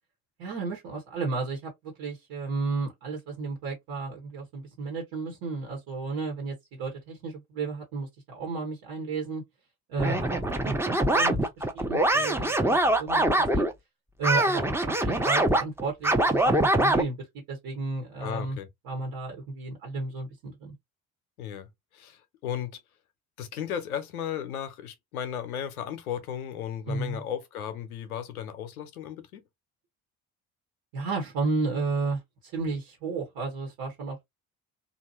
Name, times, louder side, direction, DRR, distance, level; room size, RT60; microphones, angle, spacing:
voice 1, 0.4-9.4 9.9-13.6 14.2-18.6 18.8-20.7 26.9-27.2 30.9-34.2, right 3 dB, 65° right, 1.4 m, -33 dB
sound 1, 10.0-13.7 14.2-17.0, right 1 dB, 5° right, 0.6 m, -24 dB
voice 2, 18.2-18.7 21.4-21.7 21.9-22.8 23.4-29.4, left 9 dB, 85° left, 0.7 m, -35 dB
2.8 x 2.4 x 2.8 m
hypercardioid pair, 50°, 43 cm